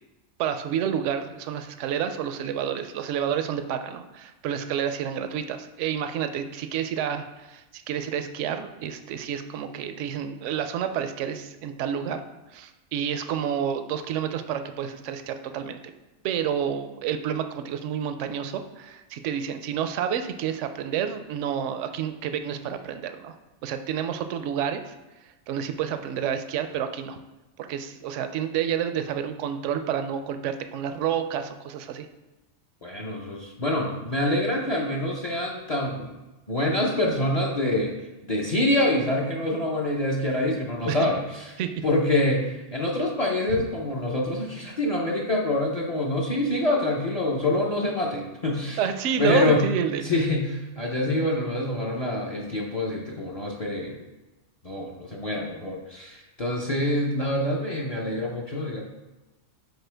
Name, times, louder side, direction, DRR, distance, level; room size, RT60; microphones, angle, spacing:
voice 1, 0.4-12.2 12.5-15.9 16.2-23.3 23.6-25.0 25.5-27.2 27.6-32.1 40.9-41.1 41.6-41.7 48.8-50.0, right 8 dB, 75° right, 9 dB, 0.9 m, -29 dB
voice 2, 32.8-36.1 36.5-37.9 38.3-41.5 41.8-48.8 49.2-49.7 50.0-54.0 54.6-58.8, left 1 dB, 35° left, -1 dB, 0.7 m, -26 dB
8.0 x 4.3 x 3.4 m, 1.1 s
omnidirectional pair, 1.3 m